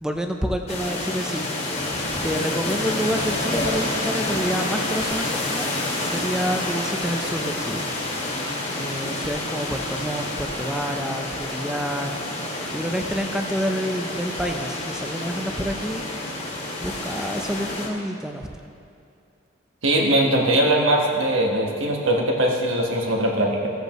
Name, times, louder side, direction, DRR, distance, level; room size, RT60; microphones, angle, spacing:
voice 1, 0.0-1.5 2.2-7.9 8.8-12.1 12.7-16.1 16.7-18.5, equal, 5° right, 4 dB, 0.5 m, -28 dB
sound 1, 0.7-17.9, left 2 dB, 30° left, 1.7 m, -28 dB
voice 2, 19.8-23.7, right 1 dB, 75° right, 0 dB, 1.4 m, -21 dB
15.5 x 8.1 x 3.1 m, 2.5 s
head